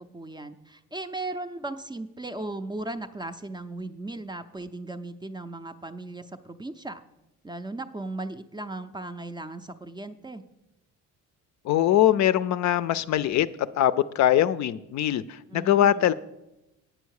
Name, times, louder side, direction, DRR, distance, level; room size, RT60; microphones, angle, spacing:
voice 1, 0.0-7.0 7.4-10.4 15.5-16.1, right 2 dB, 15° right, 9 dB, 0.4 m, -37 dB
voice 2, 11.6-16.1, left 11 dB, 60° left, 14 dB, 0.5 m, -22 dB
9.0 x 7.0 x 6.4 m, 0.93 s
cardioid pair, 105°, 33 cm